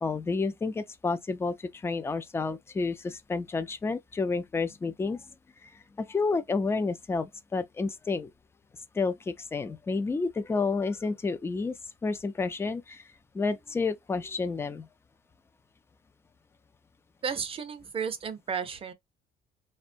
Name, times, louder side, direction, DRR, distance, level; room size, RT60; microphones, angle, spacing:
voice 1, 0.0-5.3 5.6-8.3 8.9-14.9, left 4 dB, 15° left, 0.4 m, -30 dB
voice 2, 17.2-18.9, right 6 dB, 35° right, 0.5 m, -33 dB
3.6 x 2.1 x 2.5 m
cardioid pair, 110°, 17 cm